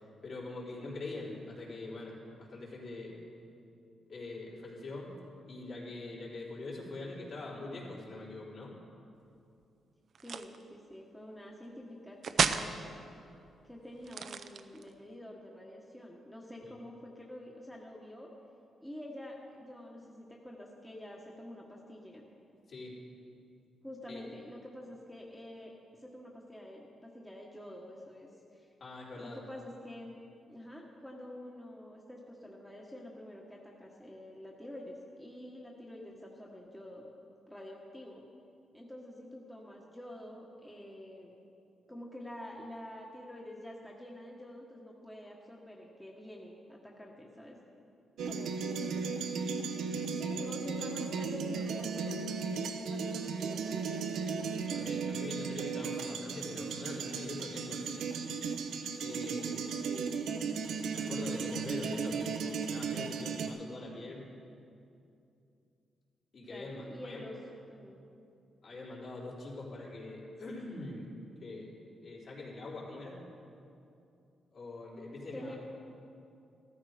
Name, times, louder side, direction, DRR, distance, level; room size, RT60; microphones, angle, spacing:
voice 1, 0.2-3.2 4.1-5.1 5.5-8.7 16.7-16.8 22.7-22.9 24.1-24.2 28.8-29.4 54.7-58.1 59.0-59.7 60.9-64.3 66.3-67.2 68.6-71.1 71.4-71.7 72.0-73.2 74.5-75.6, left 2 dB, 55° left, -5 dB, 3.8 m, -43 dB
sound 1, 10.1-10.6 12.2-12.7 14.0-14.9, right 6 dB, 60° right, 0.6 m, -31 dB
voice 2, 10.2-12.9 13.6-18.3 18.8-22.3 23.8-28.7 29.1-30.1 30.5-37.1 37.5-38.2 38.7-41.3 41.9-47.6 48.2-49.0 50.2-52.4 52.7-54.2 59.8-60.2 66.5-67.4 67.7-68.0 75.3-75.6, left 1 dB, 5° left, -2 dB, 1.4 m, -47 dB
sound 2, 48.2-63.5, right 5 dB, 85° right, 0.9 m, -36 dB
14.5 x 13.5 x 5.1 m, 2.6 s
cardioid pair, 115°, 0 cm